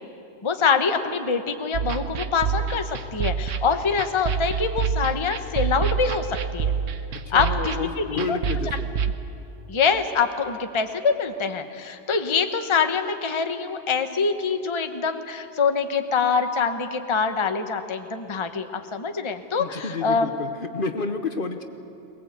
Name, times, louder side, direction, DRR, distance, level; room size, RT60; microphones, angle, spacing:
voice 1, 0.4-6.7 7.3-8.4 9.7-20.3, left 5 dB, 25° left, 7 dB, 0.9 m, -25 dB
sound 1, 1.7-9.1, right 6 dB, 80° right, 1.3 m, -27 dB
voice 2, 7.2-8.9 19.6-21.6, left 4 dB, 45° left, 7 dB, 1.1 m, -30 dB
22.5 x 20.0 x 8.1 m, 2.7 s
omnidirectional pair, 1.3 m